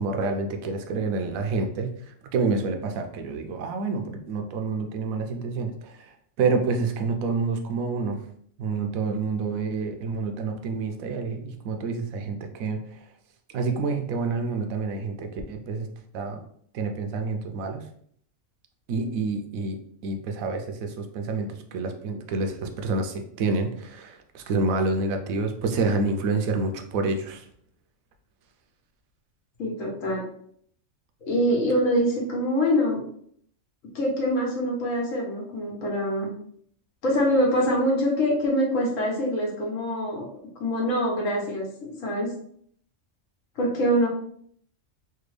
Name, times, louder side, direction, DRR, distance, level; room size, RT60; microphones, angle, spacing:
voice 1, 0.0-1.9 2.3-6.0 6.4-8.2 8.6-12.8 13.5-15.9 16.1-16.4 16.7-17.8 18.9-27.5, right 3 dB, 90° right, 5 dB, 1.0 m, -28 dB
voice 2, 29.6-30.3 31.2-33.0 33.9-36.3 37.0-40.2 40.6-42.3 43.6-44.1, equal, 70° left, -2 dB, 1.3 m, -24 dB
3.4 x 2.2 x 3.2 m, 0.65 s
omnidirectional pair, 1.4 m